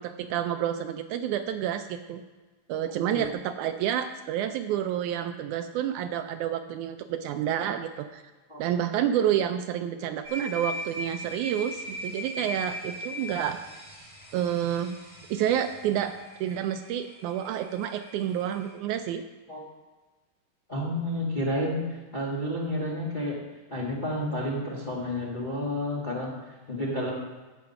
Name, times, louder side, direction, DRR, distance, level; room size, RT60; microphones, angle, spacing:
voice 1, 0.0-2.2 2.7-8.2 8.6-13.6 14.3-15.0 15.3-19.2, right 10 dB, 80° right, 8 dB, 1.9 m, -29 dB
sound 1, 10.2-18.7, left 1 dB, 15° right, 4.1 m, -40 dB
voice 2, 20.7-23.4 23.7-27.1, left 1 dB, 20° left, -5 dB, 1.4 m, -30 dB
15.5 x 5.2 x 5.8 m, 1.3 s
omnidirectional pair, 3.7 m